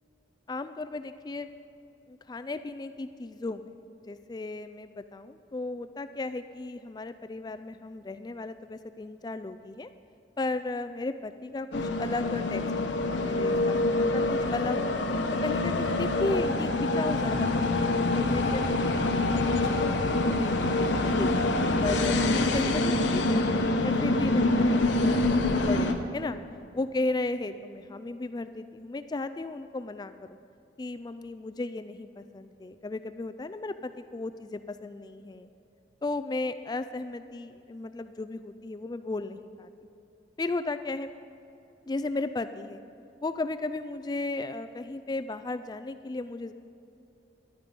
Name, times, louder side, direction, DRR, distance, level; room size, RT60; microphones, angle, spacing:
voice 1, 0.5-1.5 2.1-3.7 4.1-9.9 10.4-12.6 13.2-14.8 15.4-21.3 21.8-26.4 26.7-30.4 30.8-35.5 36.0-39.7 40.4-41.1 41.9-42.8 43.2-46.5, left 2 dB, 25° left, 11 dB, 0.3 m, -35 dB
sound 1, 11.7-25.9, left 2 dB, 90° left, 1.0 m, -26 dB
14.0 x 11.5 x 5.3 m, 2.7 s
head